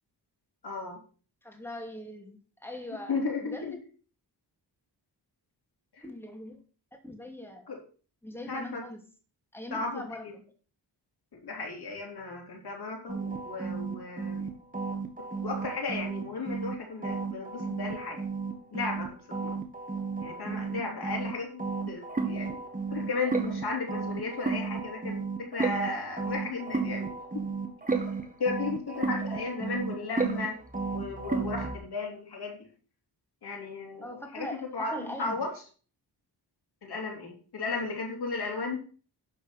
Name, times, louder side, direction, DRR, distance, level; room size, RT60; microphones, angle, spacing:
voice 1, 0.6-1.0 3.1-3.8 5.9-6.0 7.7-7.8 8.5-8.8 9.7-10.3 11.4-14.5 15.4-18.2 18.7-19.5 20.2-22.6 22.9-27.4 28.4-30.6 30.9-32.6 33.4-35.5 36.8-38.8, left 3 dB, 65° left, 1 dB, 3.4 m, -35 dB
voice 2, 1.4-3.8 6.0-6.6 6.9-7.7 8.2-9.0 9.5-10.3 29.3-29.4 29.7-29.8 34.0-34.6 34.9-35.5, left 1 dB, 5° left, 3 dB, 2.5 m, -41 dB
sound 1, 13.1-16.7 17.0-21.3 21.6-31.8, right 4 dB, 20° right, 1.8 m, -33 dB
11.5 x 4.7 x 6.0 m, 0.39 s
wide cardioid pair, 95°, 42 cm